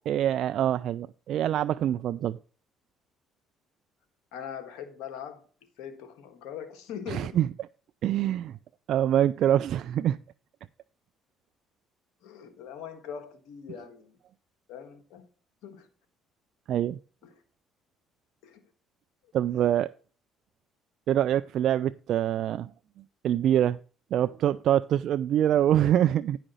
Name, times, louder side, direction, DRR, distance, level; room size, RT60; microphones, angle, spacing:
voice 1, 0.1-2.4 7.1-7.5 8.0-8.6 8.9-10.2 16.7-17.0 19.3-19.9 21.1-22.7 23.2-23.8 24.1-26.4, right 11 dB, 65° right, 0.3 m, -25 dB
voice 2, 4.3-5.4 5.8-7.4 12.2-14.2 14.7-15.3 15.6-15.9 17.2-17.4 18.4-18.7, left 8 dB, 75° left, 1.5 m, -41 dB
10.0 x 5.0 x 5.5 m
supercardioid pair, 75°, 0 cm